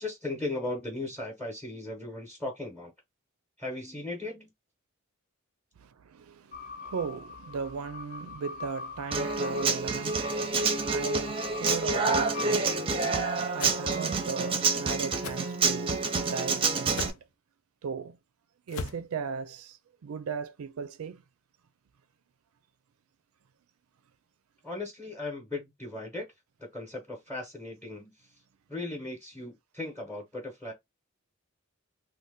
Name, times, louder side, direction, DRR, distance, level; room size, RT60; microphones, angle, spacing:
voice 1, 0.0-2.9 3.6-4.5 24.6-26.3 26.6-28.3 28.7-30.7, left 2 dB, 5° left, 0.8 m, -37 dB
voice 2, 5.8-10.3 10.6-12.9 13.2-17.1 17.8-18.2 18.7-19.8 20.0-21.2, right 5 dB, 90° right, 0.4 m, -37 dB
sound 1, 6.5-13.3, left 4 dB, 35° left, 0.4 m, -43 dB
Human voice / Acoustic guitar, 9.1-17.1, right 4 dB, 25° right, 0.5 m, -28 dB
sound 2, 13.6-13.8 15.2-15.4 16.9-17.2 18.7-19.0, left 4 dB, 85° left, 0.5 m, -37 dB
2.7 x 2.1 x 3.4 m
head